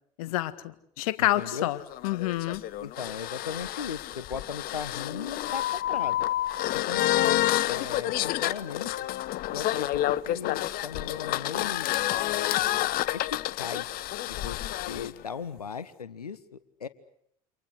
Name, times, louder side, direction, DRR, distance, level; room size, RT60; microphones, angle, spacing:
voice 1, 0.2-1.8 2.0-2.6, left 16 dB, 70° left, 14 dB, 1.7 m, -28 dB
voice 2, 1.2-1.7 2.8-6.2 6.7-7.4 7.7-8.9 9.5-12.0 13.1-14.6 14.8-16.9, left 6 dB, 85° left, 15 dB, 1.5 m, -38 dB
sound 1, 1.4-15.1, left 14 dB, 50° left, 1.1 m, -29 dB
28.5 x 27.0 x 6.4 m, 0.69 s
figure-of-eight pair, 65°, 19 cm